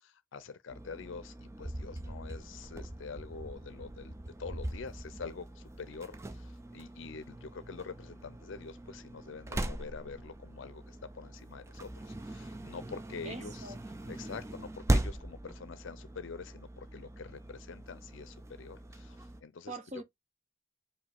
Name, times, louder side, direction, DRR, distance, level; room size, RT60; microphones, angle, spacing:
voice 1, 0.0-4.1 4.4-13.7 14.1-20.0, left 5 dB, 75° left, 0.5 m, -46 dB
sound 1, 0.7-19.4, right 1 dB, 15° right, 0.3 m, -40 dB
voice 2, 13.2-13.8 19.7-20.0, right 2 dB, 35° right, 0.8 m, -43 dB
4.8 x 2.7 x 3.4 m
head